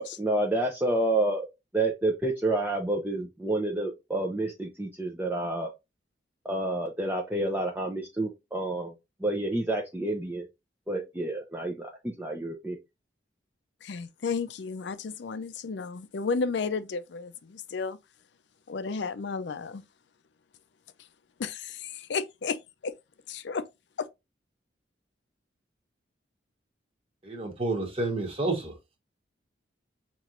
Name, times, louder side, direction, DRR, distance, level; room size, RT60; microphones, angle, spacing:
voice 1, 0.0-1.5 1.7-5.7 6.4-8.9 9.2-10.4 10.9-12.8, right 2 dB, 10° right, 0.5 m, -29 dB
voice 2, 13.8-18.0 18.7-19.8 21.4-22.9 23.3-23.7 24.0-24.1, left 5 dB, 70° left, 0.4 m, -33 dB
voice 3, 27.2-28.8, right 2 dB, 30° right, 1.2 m, -30 dB
5.8 x 3.0 x 2.5 m
head